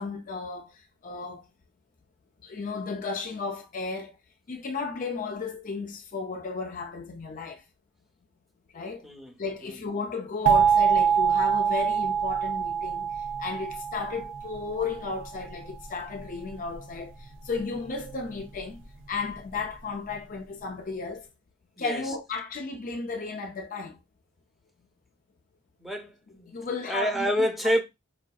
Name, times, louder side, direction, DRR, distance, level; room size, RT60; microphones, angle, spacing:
voice 1, 0.0-1.5 2.4-4.2 4.5-7.6 8.7-9.1 9.4-18.8 19.1-21.3 21.8-24.0 26.5-27.3, left 4 dB, 40° left, 0.4 m, -34 dB
sound 1, 10.5-15.2, right 7 dB, 65° right, 0.5 m, -25 dB
voice 2, 25.8-26.5 26.9-27.8, equal, ahead, 0.6 m, -27 dB
4.7 x 2.6 x 2.3 m
head